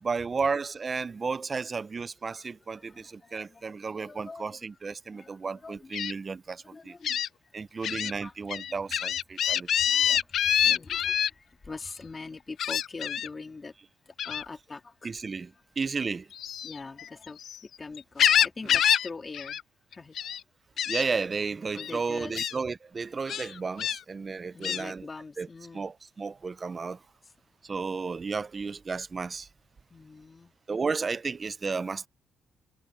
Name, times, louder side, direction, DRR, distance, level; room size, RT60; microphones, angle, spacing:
voice 1, 0.0-7.0 7.5-10.2 15.0-15.5 15.8-16.3 20.9-25.1 25.4-25.5 25.7-27.0 27.6-29.5 30.7-32.1, right 4 dB, 35° right, 0.6 m, -33 dB
voice 2, 2.5-4.8 5.0-5.9 6.6-7.3 7.9-8.3 8.7-8.8 9.4-13.7 14.1-15.1 16.6-19.6 19.9-20.2 21.7-22.4 24.5-25.9 29.9-30.5, left 4 dB, 30° left, 2.4 m, -44 dB
Gull seagull, 5.9-6.1 7.0-7.3 7.8-8.1 8.5-11.3 12.6-13.3 14.2-14.5 16.3-17.6 17.9-19.1 19.3-19.6 19.9-20.4 20.8-21.0 21.8-21.9 22.3-22.5 23.3-24.0 24.6-24.8, left 9 dB, 65° left, 0.3 m, -26 dB
cardioid pair, 90°, 0 cm